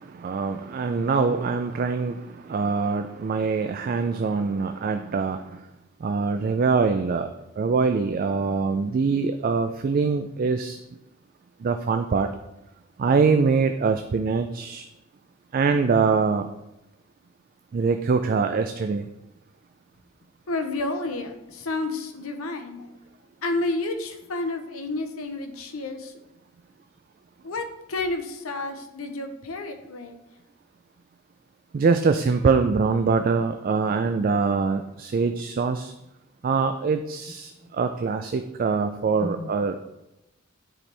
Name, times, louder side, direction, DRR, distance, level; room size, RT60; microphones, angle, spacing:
voice 1, 0.0-5.7 6.0-10.8 11.6-12.3 13.0-14.9 15.5-16.5 17.7-19.1 31.7-35.9 36.4-39.8, right 4 dB, 45° right, 7 dB, 0.3 m, -24 dB
voice 2, 20.5-22.9 23.4-26.1 27.4-30.2 39.2-39.5, left 2 dB, 90° left, 7 dB, 0.8 m, -30 dB
9.9 x 4.4 x 3.3 m, 0.91 s
head